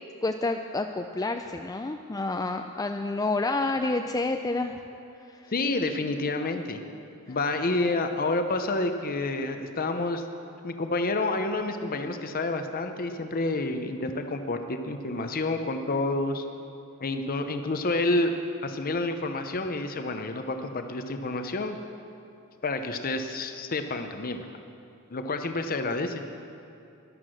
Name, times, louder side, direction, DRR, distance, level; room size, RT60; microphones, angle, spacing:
voice 1, 0.2-4.8 5.3-5.5 7.3-7.4, left 2 dB, 15° left, 5 dB, 0.4 m, -29 dB
voice 2, 5.5-6.8 7.3-10.2 10.6-16.4 17.0-18.3 18.6-21.8 22.6-24.5 25.1-26.2, left 2 dB, 40° left, 7 dB, 0.8 m, -29 dB
13.5 x 11.5 x 6.3 m, 2.7 s
head